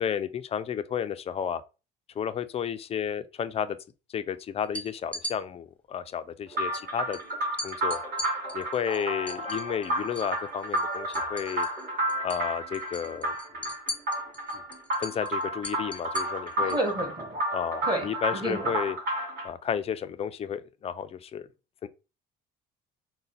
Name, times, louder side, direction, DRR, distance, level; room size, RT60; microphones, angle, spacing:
voice 1, 0.0-1.6 2.2-3.8 4.1-7.2 7.6-8.0 8.5-11.7 12.2-13.4 14.5-14.6 15.0-16.8 17.5-19.0 19.4-21.5 21.8-21.9, left 8 dB, 35° left, 0.4 m, -32 dB
sound 1, 4.6-5.4 6.7-6.8 7.1-7.2 7.6-10.4 10.6-11.8 12.1-12.4 12.7-16.9, left 1 dB, 10° left, 0.8 m, -39 dB
sound 2, 6.5-19.5, right 1 dB, 60° right, 2.3 m, -31 dB
voice 2, 16.6-17.4 17.8-18.7, right 1 dB, 25° right, 1.7 m, -31 dB
3.9 x 2.1 x 4.0 m
cardioid pair, 110°, 17 cm